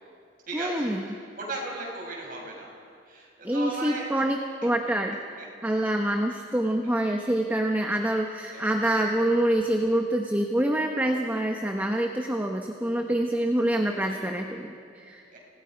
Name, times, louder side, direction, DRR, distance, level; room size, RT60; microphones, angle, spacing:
voice 1, 0.5-1.2 3.4-5.2 5.6-15.2, right 1 dB, 10° right, 2 dB, 1.1 m, -26 dB
voice 2, 1.0-2.7 3.1-4.1 5.4-5.5 8.5-8.7 13.9-14.2 15.3-15.4, right 2 dB, 50° right, -2 dB, 6.0 m, -36 dB
28.0 x 19.0 x 5.3 m, 2.4 s
head